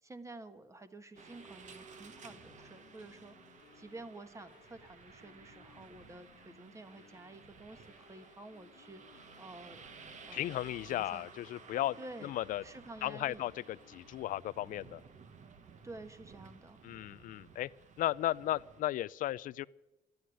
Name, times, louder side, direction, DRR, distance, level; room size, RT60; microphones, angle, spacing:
voice 1, 0.0-9.8 10.2-11.3 12.0-12.3 12.6-13.4 15.8-16.8, right 2 dB, 15° right, 10 dB, 1.3 m, -51 dB
sound 1, 1.1-14.2, left 11 dB, 90° left, 1.4 m, -64 dB
sound 2, 1.2-18.8, right 5 dB, 45° right, 1.4 m, -55 dB
voice 2, 10.3-12.6 13.0-13.5 13.9-15.0 16.8-17.7 18.0-19.7, left 14 dB, 55° left, 19 dB, 0.4 m, -35 dB
13.0 x 9.3 x 9.8 m, 1.0 s
cardioid pair, 110°, 17 cm